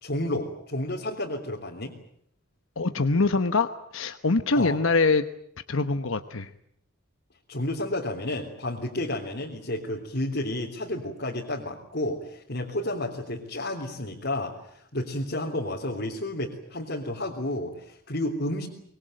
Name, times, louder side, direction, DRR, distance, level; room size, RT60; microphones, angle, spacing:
voice 1, 0.0-1.9 4.6-4.8 7.5-18.7, left 1 dB, 55° left, -2 dB, 3.5 m, -31 dB
voice 2, 2.8-5.2 5.7-6.5, left 3 dB, 75° left, 9 dB, 1.1 m, -24 dB
24.5 x 22.0 x 9.1 m, 0.68 s
head